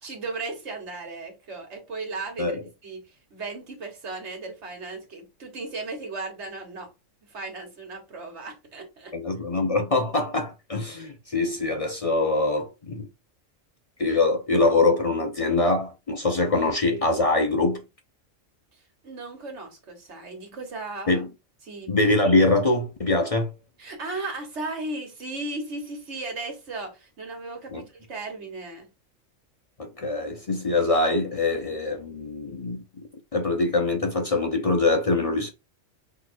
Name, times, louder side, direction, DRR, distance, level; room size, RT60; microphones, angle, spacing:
voice 1, 0.0-6.9 7.2-9.2 19.0-21.2 21.6-21.9 23.8-28.9, right 3 dB, 60° right, 1.7 m, -36 dB
voice 2, 9.1-13.1 14.0-17.8 21.1-21.3 21.9-23.5 27.7-27.8 29.8-32.8 33.3-35.5, left 2 dB, 50° left, 0.4 m, -23 dB
5.9 x 2.9 x 2.5 m
omnidirectional pair, 1.3 m